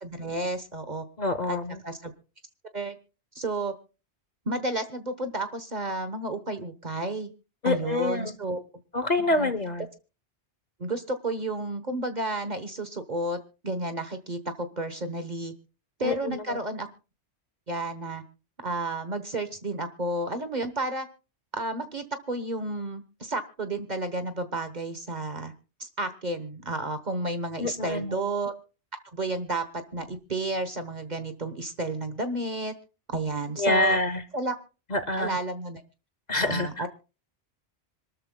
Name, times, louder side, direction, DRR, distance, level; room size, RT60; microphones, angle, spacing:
voice 1, 0.0-1.0 1.5-1.6 1.8-2.1 2.7-3.0 3.3-3.7 4.5-7.3 7.6-8.6 9.3-9.5 10.8-13.4 13.6-15.5 16.0-16.9 17.7-18.2 18.6-21.1 21.5-25.5 25.8-28.5 29.1-29.6 29.9-32.7 33.1-34.0 34.3-34.6 35.2-35.8 36.3-36.9, right 2 dB, 40° right, 9 dB, 1.2 m, -31 dB
voice 2, 1.2-1.8 7.6-8.3 8.9-9.8 16.0-16.6 27.6-28.2 33.6-34.2 34.9-35.4 36.3-36.9, left 2 dB, 40° left, 11 dB, 0.9 m, -26 dB
26.5 x 13.0 x 2.2 m, 0.33 s
omnidirectional pair, 1.1 m